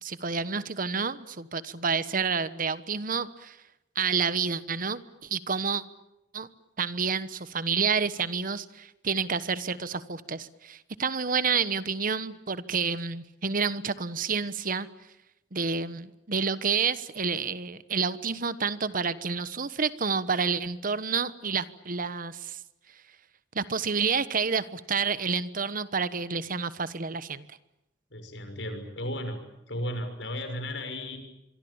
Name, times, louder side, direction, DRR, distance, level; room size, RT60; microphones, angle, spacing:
voice 1, 0.0-3.6 3.9-5.8 6.3-6.5 6.8-14.9 15.5-22.6 23.5-27.5, right 5 dB, 50° right, 15 dB, 1.2 m, -29 dB
voice 2, 28.1-29.4 29.7-31.2, left 1 dB, 80° left, 7 dB, 6.4 m, -34 dB
26.0 x 24.0 x 8.9 m, 0.88 s
head